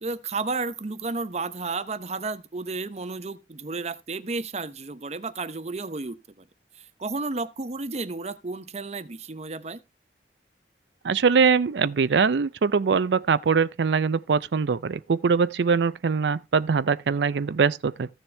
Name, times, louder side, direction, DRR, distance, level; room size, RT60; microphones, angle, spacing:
voice 1, 0.0-6.4 7.0-9.8, right 3 dB, 35° right, 0.8 m, -32 dB
voice 2, 11.0-18.1, right 5 dB, 70° right, 0.5 m, -22 dB
14.5 x 7.0 x 3.3 m
head